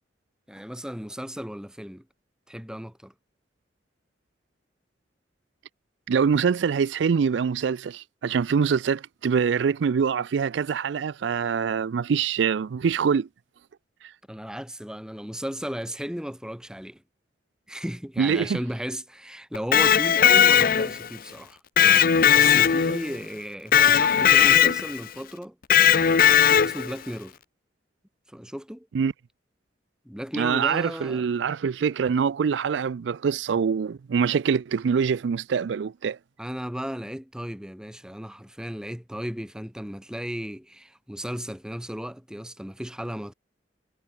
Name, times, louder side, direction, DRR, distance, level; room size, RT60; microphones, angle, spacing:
voice 1, 0.5-2.1 2.5-3.1 14.3-17.0 17.7-21.6 22.3-25.6 26.6-27.4 28.3-28.9 30.1-31.3 36.4-43.3, equal, 5° right, 2.0 m, -35 dB
voice 2, 6.1-13.3 18.2-18.6 28.9-29.1 30.3-36.2, right 6 dB, 75° right, 0.4 m, -24 dB
Electric guitar, 19.5-21.1 21.8-23.2 23.7-25.0 25.7-26.9, left 9 dB, 50° left, 0.6 m, -18 dB
head